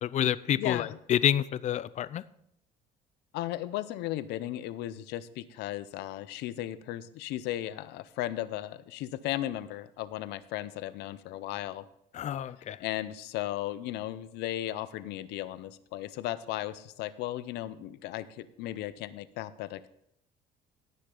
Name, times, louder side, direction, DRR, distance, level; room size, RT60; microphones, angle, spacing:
voice 1, 0.0-2.2 12.1-12.8, left 10 dB, 45° left, 18 dB, 0.4 m, -28 dB
voice 2, 0.6-1.0 3.3-11.9 12.8-19.9, left 14 dB, 90° left, 16 dB, 0.6 m, -36 dB
17.0 x 6.5 x 3.8 m, 0.75 s
cardioid pair, 110°, 17 cm